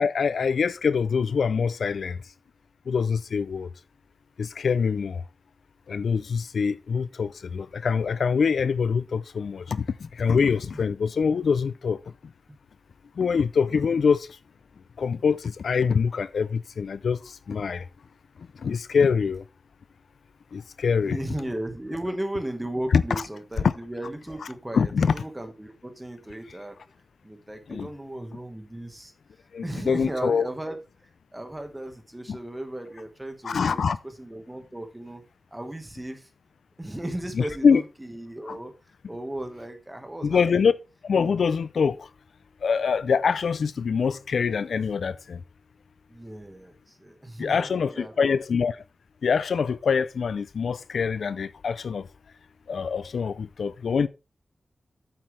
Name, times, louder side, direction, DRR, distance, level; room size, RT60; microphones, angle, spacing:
voice 1, 0.0-2.2 2.9-3.7 4.4-5.2 5.9-12.0 13.2-14.3 15.0-17.2 17.5-17.8 18.6-19.4 20.5-21.2 22.9-23.0 24.7-25.1 27.7-27.9 29.5-30.5 32.3-32.4 33.4-34.0 37.4-37.8 38.5-38.6 40.2-40.7 41.0-42.1 42.6-45.4 47.4-48.8 49.2-52.1 52.7-54.1, left 6 dB, 80° left, 0.4 m, -24 dB
voice 2, 21.0-26.8 27.2-29.1 29.6-30.8 31.3-35.2 35.5-36.3 36.8-38.7 39.1-40.7 46.1-48.4, right 1 dB, 10° right, 1.5 m, -36 dB
8.8 x 7.6 x 3.3 m
wide cardioid pair, 150°, 0 cm